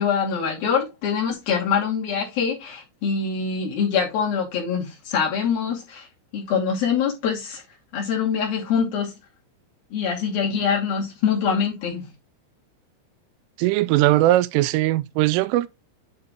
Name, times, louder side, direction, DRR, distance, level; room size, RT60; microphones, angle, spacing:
voice 1, 0.0-6.1 6.3-7.6 7.9-9.1 9.9-12.1, left 6 dB, 55° left, 4.1 m, -24 dB
voice 2, 13.6-15.7, right 16 dB, 90° right, 3.2 m, -19 dB
10.0 x 3.9 x 3.7 m
omnidirectional pair, 5.6 m